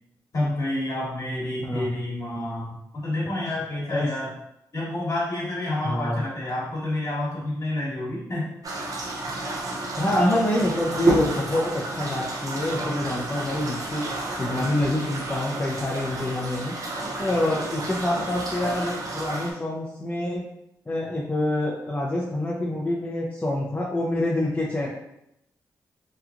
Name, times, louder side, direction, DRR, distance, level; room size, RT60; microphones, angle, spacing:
voice 1, 0.3-4.3 4.7-8.6, left 1 dB, 50° left, -5 dB, 1.3 m, -29 dB
voice 2, 5.8-6.2 10.0-14.1 14.4-16.7 17.2-20.4 20.9-24.9, left 1 dB, 25° left, -4 dB, 0.5 m, -26 dB
sound 1, 8.6-19.5, right 2 dB, 55° right, 0.6 m, -31 dB
2.9 x 2.3 x 2.4 m, 0.81 s
supercardioid pair, 55°, 7 cm